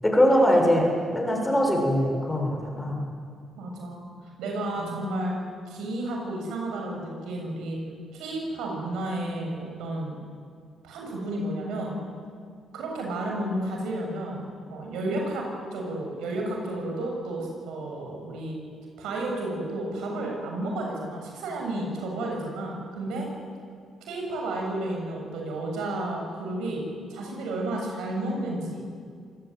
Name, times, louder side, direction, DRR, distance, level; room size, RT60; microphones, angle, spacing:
voice 1, 0.0-3.0 4.8-5.0, equal, 15° left, 1 dB, 7.0 m, -22 dB
voice 2, 3.6-4.0 4.4-5.4 5.7-7.8 8.1-10.2 10.8-12.0 12.7-14.4 14.7-18.6 19.0-23.3 24.1-26.8 27.1-28.9, right 1 dB, 90° right, 0 dB, 7.4 m, -32 dB
26.5 x 17.5 x 9.5 m, 2.2 s
cardioid pair, 90°, 0 cm